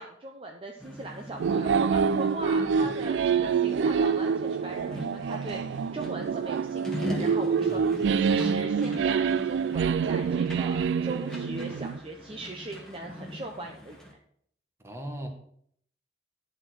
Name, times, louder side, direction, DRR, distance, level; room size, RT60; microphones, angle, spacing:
voice 1, 0.0-14.0, right 2 dB, 30° right, 2 dB, 0.7 m, -40 dB
sound 1, 0.8-14.1, left 1 dB, 5° left, 1.6 m, -41 dB
sound 2, 1.4-12.0, right 6 dB, 80° right, 0.3 m, -26 dB
voice 2, 2.6-3.0 7.6-8.0 14.8-15.3, right 1 dB, 15° right, 3 dB, 1.2 m, -40 dB
10.5 x 4.3 x 6.1 m, 0.65 s
head